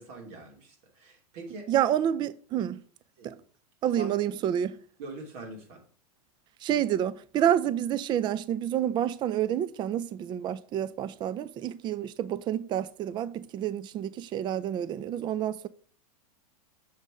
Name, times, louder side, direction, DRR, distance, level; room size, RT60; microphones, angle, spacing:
voice 1, 0.0-1.7 3.2-3.4 3.9-4.1 5.0-5.8, right 2 dB, 55° right, 2.8 m, -43 dB
voice 2, 1.7-2.8 3.2-3.4 3.8-4.8 6.6-15.7, right 10 dB, 25° right, 0.4 m, -28 dB
6.5 x 5.1 x 5.0 m
hypercardioid pair, 125°, 20 cm